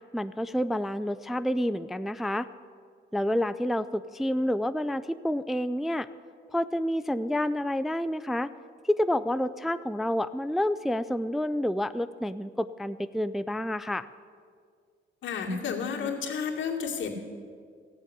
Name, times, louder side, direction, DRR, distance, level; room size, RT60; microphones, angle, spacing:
voice 1, 0.1-2.5 3.1-6.1 6.5-8.5 8.8-14.1, left 1 dB, ahead, 13 dB, 0.3 m, -29 dB
voice 2, 15.2-17.1, left 6 dB, 70° left, -1 dB, 2.4 m, -31 dB
15.5 x 7.3 x 9.9 m, 2.1 s
cardioid pair, 90°, 20 cm